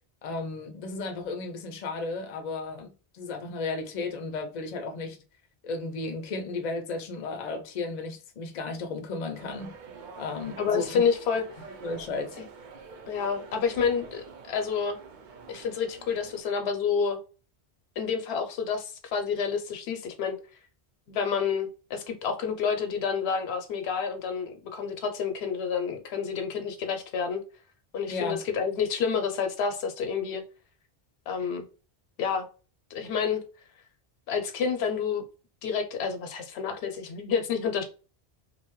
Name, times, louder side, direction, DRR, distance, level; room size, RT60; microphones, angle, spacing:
voice 1, 0.2-5.2 5.6-9.7 10.2-11.0 11.8-12.4 28.1-28.4, left 3 dB, 55° left, 0.5 m, -34 dB
sound 1, 9.3-16.4, right 5 dB, 60° right, 0.6 m, -47 dB
voice 2, 10.6-11.4 12.4-12.5 13.1-15.0 15.5-17.2 18.0-20.4 21.1-27.4 27.9-30.4 31.3-31.7 32.2-32.5 32.9-33.4 34.3-35.2 35.6-37.8, left 6 dB, 80° left, 0.8 m, -29 dB
2.6 x 2.2 x 3.0 m
omnidirectional pair, 1.1 m